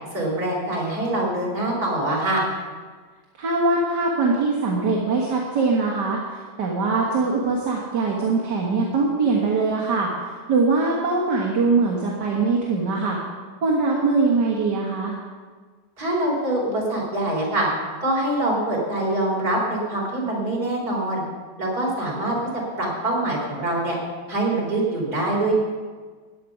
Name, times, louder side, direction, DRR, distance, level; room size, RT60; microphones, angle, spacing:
voice 1, 0.1-2.4 16.0-17.7 18.0-21.2 21.6-24.0 24.3-25.5, right 1 dB, 60° right, -3 dB, 4.4 m, -24 dB
voice 2, 3.4-13.2 13.6-15.2, right 3 dB, 75° right, -2 dB, 2.2 m, -22 dB
15.0 x 5.6 x 9.9 m, 1.5 s
omnidirectional pair, 1.9 m